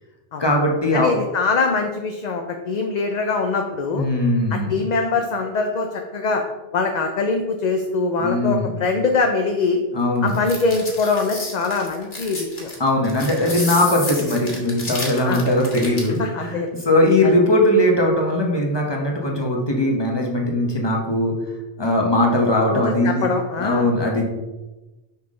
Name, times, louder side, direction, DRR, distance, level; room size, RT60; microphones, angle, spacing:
voice 1, 0.4-1.1 4.0-4.7 8.2-8.7 9.9-10.3 12.8-21.3 21.8-23.3 23.6-24.3, left 1 dB, 25° left, 0 dB, 1.1 m, -20 dB
voice 2, 0.9-4.0 4.5-6.4 6.7-9.8 10.2-12.7 15.2-15.5 16.2-16.7 17.2-17.4 22.7-23.9, left 4 dB, 50° left, 3 dB, 0.6 m, -23 dB
sound 1, 10.3-16.2, left 2 dB, 80° left, 1.7 m, -31 dB
5.8 x 5.6 x 3.7 m, 1.1 s
omnidirectional pair, 1.0 m